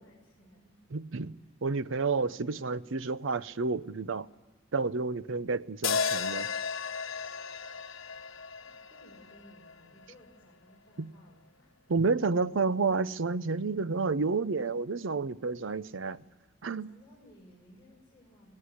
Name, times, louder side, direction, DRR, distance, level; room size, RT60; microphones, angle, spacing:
voice 1, 0.0-0.7 1.4-1.5 1.8-2.9 8.6-11.8 14.5-14.6 16.8-18.5, equal, 10° left, 6.3 m, -59 dB
voice 2, 0.9-4.3 4.7-6.5 11.0-11.1 11.9-16.2 16.6-16.9, right 4 dB, 75° right, 0.7 m, -30 dB
sound 1, 5.8-10.1, left 6 dB, 85° left, 1.1 m, -34 dB
19.0 x 18.5 x 9.7 m
head